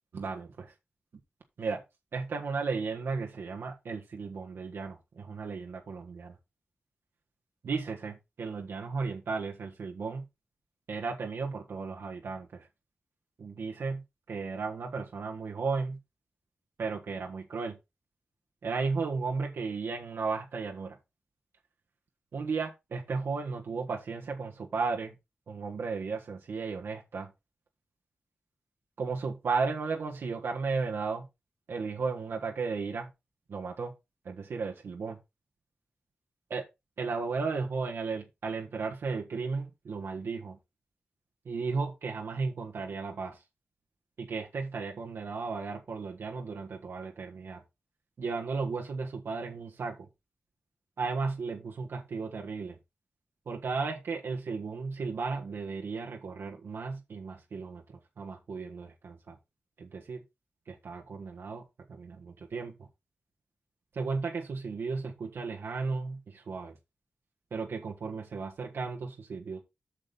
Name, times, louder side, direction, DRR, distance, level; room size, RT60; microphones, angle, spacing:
voice 1, 0.1-0.7 1.6-1.8 2.1-6.3 7.6-10.2 10.9-12.7 13.4-14.0 14.3-16.0 16.8-17.8 18.6-21.0 22.3-25.1 25.5-27.3 29.0-31.3 31.7-33.1 33.5-33.9 34.2-35.2 36.5-36.6 37.0-40.6 41.4-43.4 44.2-47.6 48.2-49.9 51.0-52.7 53.5-59.4 59.8-60.2 60.7-61.6 61.9-62.7 63.9-66.8 67.5-69.6, right 4 dB, 80° right, 1.4 m, -34 dB
8.3 x 7.0 x 3.9 m
wide cardioid pair, 170°, 4 cm